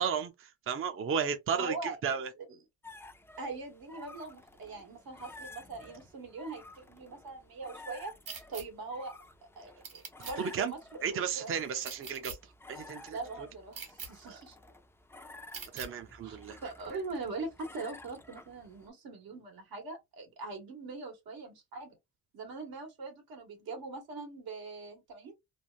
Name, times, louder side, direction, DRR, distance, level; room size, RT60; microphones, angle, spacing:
voice 1, 0.0-2.3 10.4-10.7 11.0-12.4 12.7-13.2 14.2-14.4 15.7-16.6, right 7 dB, 35° right, 0.6 m, -34 dB
voice 2, 1.6-2.0 2.5-2.6 3.4-8.1 8.5-9.1 9.5-11.5 13.1-14.5 16.2-22.0 22.3-25.3, right 3 dB, 85° right, 1.7 m, -42 dB
sound 1, 2.8-18.9, left 2 dB, 5° left, 0.4 m, -53 dB
sound 2, 8.3-8.6 9.8-10.3 11.8-12.4 13.7-14.1 15.5-15.9, right 6 dB, 65° right, 1.7 m, -42 dB
3.2 x 2.4 x 2.4 m
cardioid pair, 130°, 36 cm